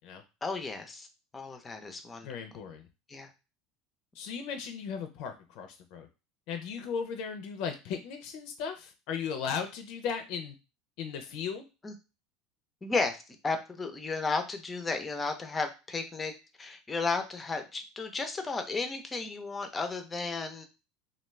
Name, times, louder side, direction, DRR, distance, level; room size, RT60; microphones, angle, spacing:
voice 1, 0.4-1.1 1.3-2.3 3.1-3.3 11.8-11.9 12.8-16.3 16.6-20.7, left 4 dB, 20° left, 6 dB, 0.6 m, -33 dB
voice 2, 2.2-2.9 4.2-6.1 6.5-10.5 11.0-11.6, left 6 dB, 65° left, 6 dB, 0.5 m, -36 dB
2.3 x 2.3 x 3.2 m, 0.28 s
supercardioid pair, 110°, 0 cm